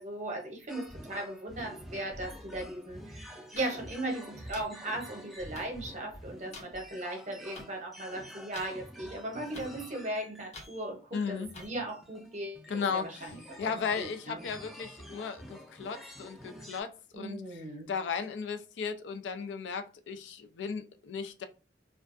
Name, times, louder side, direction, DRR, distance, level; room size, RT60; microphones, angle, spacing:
voice 1, 0.0-14.4 17.1-17.9, right 1 dB, 40° right, 0.8 m, -38 dB
sound 1, 0.7-16.8, equal, ahead, 0.4 m, -49 dB
sound 2, 3.6-3.7 4.5-4.7 5.6-5.7 6.5-6.6 7.6-7.7 8.5-8.7 9.5-9.7 10.5-10.7 11.5-11.7, left 3 dB, 40° left, 0.6 m, -45 dB
voice 2, 11.1-11.5 12.7-13.3 13.6-17.4 17.9-21.4, left 6 dB, 90° left, 0.4 m, -35 dB
2.3 x 2.2 x 2.4 m
head